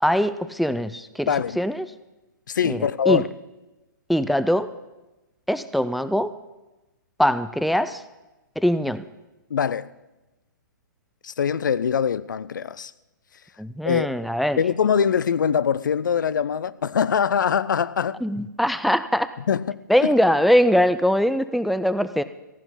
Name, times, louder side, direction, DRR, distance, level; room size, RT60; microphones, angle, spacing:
voice 1, 0.0-1.3 1.6-1.9 2.6-3.2 4.1-4.7 5.5-6.3 7.2-8.0 8.6-9.0 13.6-14.6 18.2-19.3 19.9-22.2, equal, ahead, 0.4 m, -22 dB
voice 2, 1.3-1.6 2.5-3.3 9.5-9.9 11.2-12.9 13.9-14.1 14.6-18.2 19.5-20.1, left 7 dB, 65° left, 0.6 m, -23 dB
15.0 x 5.9 x 9.9 m
figure-of-eight pair, 120°, 11 cm